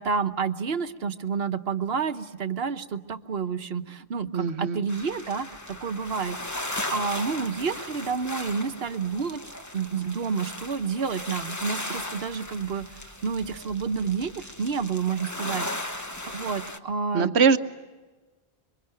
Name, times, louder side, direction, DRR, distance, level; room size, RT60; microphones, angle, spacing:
voice 1, 0.0-9.4 9.7-15.7 15.9-17.6, right 5 dB, 70° right, 9 dB, 1.3 m, -30 dB
voice 2, 4.3-4.8 17.1-17.6, right 5 dB, 85° right, 9 dB, 1.3 m, -21 dB
sound 1, 4.9-16.8, left 1 dB, 15° left, 1.2 m, -37 dB
27.0 x 24.5 x 9.0 m, 1.3 s
omnidirectional pair, 1.1 m